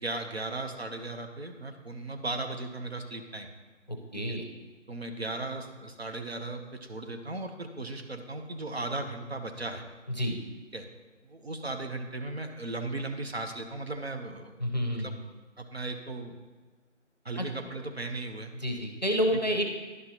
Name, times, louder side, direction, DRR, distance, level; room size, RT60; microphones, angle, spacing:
voice 1, 0.0-3.5 4.1-4.4 4.9-9.8 10.7-10.9 11.2-14.5 15.0-15.1 15.6-16.4 17.2-18.5, right 2 dB, 55° right, 5 dB, 0.8 m, -36 dB
voice 2, 3.9-4.5 10.1-10.4 14.6-15.2 17.4-17.5 18.6-19.7, equal, 35° left, 3 dB, 0.6 m, -29 dB
11.0 x 5.4 x 2.9 m, 1.4 s
figure-of-eight pair, 170°, 38 cm